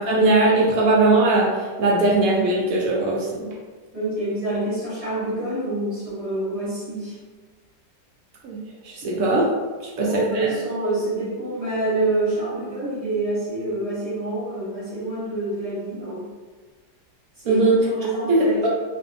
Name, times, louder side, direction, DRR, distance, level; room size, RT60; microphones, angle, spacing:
voice 1, 0.0-3.5 8.4-9.5 9.8-10.5 17.5-17.8 18.3-18.7, right 2 dB, 70° right, -4 dB, 0.8 m, -20 dB
voice 2, 3.9-7.2 10.0-16.3 17.4-18.7, right 2 dB, 35° right, -9 dB, 0.6 m, -27 dB
2.6 x 2.4 x 2.5 m, 1.4 s
omnidirectional pair, 1.8 m